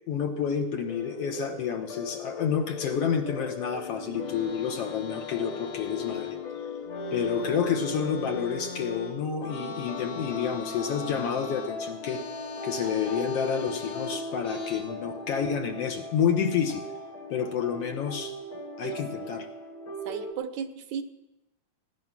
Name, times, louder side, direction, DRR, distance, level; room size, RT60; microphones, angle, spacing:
voice 1, 0.0-6.4 7.1-12.2 12.6-16.8 17.3-18.3 18.8-19.5, left 7 dB, 65° left, 6 dB, 1.9 m, -29 dB
sound 1, 0.9-20.3, left 2 dB, 45° left, 1.2 m, -38 dB
sound 2, 4.1-6.5 6.8-14.8, left 5 dB, 90° left, 3.6 m, -41 dB
voice 2, 18.5-19.3 20.1-21.0, right 7 dB, 80° right, 9 dB, 2.3 m, -36 dB
18.0 x 10.5 x 6.0 m, 0.94 s
omnidirectional pair, 3.3 m